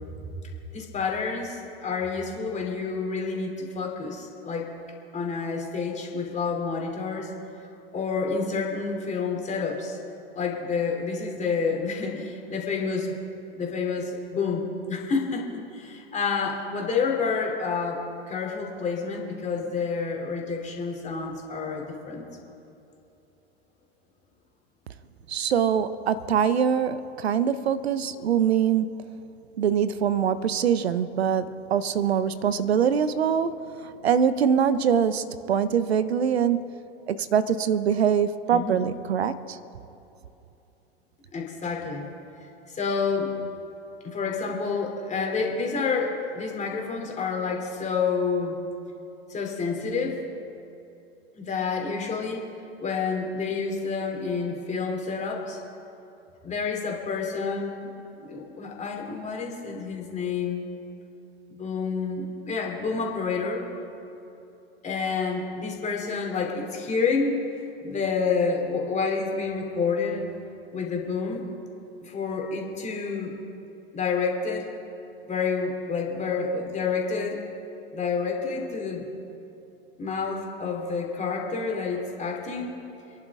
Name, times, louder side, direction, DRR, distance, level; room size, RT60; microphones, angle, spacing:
voice 1, 0.7-4.7 5.1-7.3 7.9-10.0 10.3-13.2 13.5-15.5 15.7-22.2 38.5-38.8 41.3-42.1 42.7-43.3 44.0-48.6 49.3-50.3 51.3-52.5 52.8-55.6 56.4-57.9 58.2-60.7 61.5-63.7 64.8-67.4 67.8-70.3 70.7-71.4 72.0-73.4 73.9-74.7 75.2-77.4 77.9-79.1 80.0-82.7, left 5 dB, 20° left, 0 dB, 3.0 m, -29 dB
voice 2, 25.3-28.9 29.6-36.8 37.1-39.6, right 8 dB, 75° right, 15 dB, 0.7 m, -24 dB
27.0 x 11.0 x 3.6 m, 2.9 s
figure-of-eight pair, 85°, 32 cm